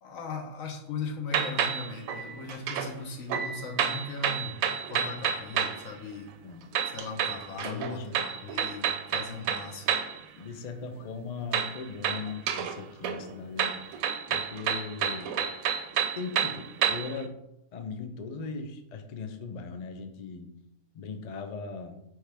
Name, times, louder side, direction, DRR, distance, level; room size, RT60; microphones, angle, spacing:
voice 1, 0.0-4.6 4.9-6.3 6.9-9.9, left 3 dB, 65° left, 2 dB, 1.3 m, -39 dB
sound 1, 1.3-2.9 3.3-5.9 6.7-10.2 11.5-12.8 13.0-17.2, right 8 dB, 70° right, 1.0 m, -30 dB
voice 2, 7.6-8.3 10.4-13.8 14.3-15.3 16.1-17.3 17.7-20.5 20.9-22.0, left 4 dB, 80° left, 6 dB, 0.3 m, -38 dB
9.3 x 3.2 x 3.4 m, 0.84 s
omnidirectional pair, 1.6 m